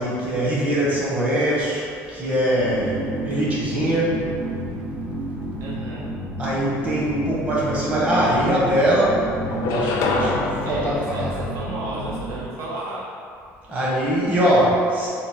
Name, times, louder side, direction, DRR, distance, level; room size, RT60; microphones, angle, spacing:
voice 1, 0.0-4.3 6.4-11.4 13.7-15.1, right 1 dB, 25° right, -6 dB, 1.0 m, -22 dB
sound 1, 2.5-12.4, right 1 dB, 90° right, 1.2 m, -31 dB
voice 2, 5.6-6.1 10.6-13.1, right 2 dB, 65° right, -3 dB, 0.4 m, -33 dB
sound 2, 7.8-7.9 8.2-9.0 9.5-12.1, left 3 dB, 75° left, 0.4 m, -28 dB
3.8 x 2.1 x 3.7 m, 2.5 s
cardioid pair, 125°, 6 cm